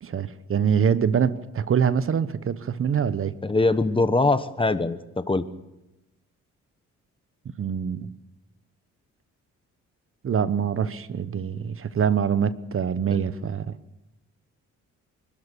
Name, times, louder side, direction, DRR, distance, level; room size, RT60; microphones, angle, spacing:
voice 1, 0.0-3.3 7.4-8.1 10.2-13.8, right 7 dB, 45° right, 1.1 m, -24 dB
voice 2, 3.4-5.4 13.1-13.3, left 2 dB, 15° left, 1.2 m, -23 dB
25.5 x 12.5 x 8.4 m
cardioid pair, 90°, 30 cm